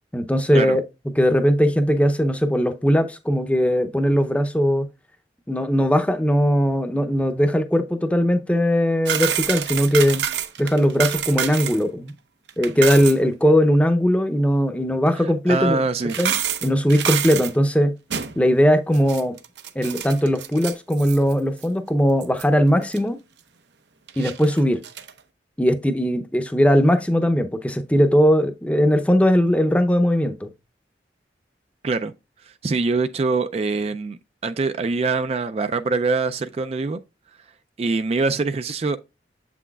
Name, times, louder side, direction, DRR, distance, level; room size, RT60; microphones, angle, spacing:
voice 1, 0.1-0.8 1.2-4.9 5.5-10.2 10.6-12.1 12.6-15.8 16.2-16.3 16.6-17.9 18.4-19.3 19.8-23.2 24.2-24.8 25.6-30.5, equal, 10° left, 0.6 m, -19 dB
sound 1, 9.0-11.8 12.1-12.2 12.5-13.2 15.1-15.2 16.0-17.5 18.1-18.4 18.9-21.3 21.6-21.7 22.2-22.4 22.9-23.0 24.1-25.1, right 9 dB, 85° right, 0.7 m, -27 dB
voice 2, 15.1-16.2 31.8-32.1 32.4-37.0 37.8-39.0, right 3 dB, 35° right, 0.3 m, -24 dB
7.8 x 6.0 x 2.3 m
head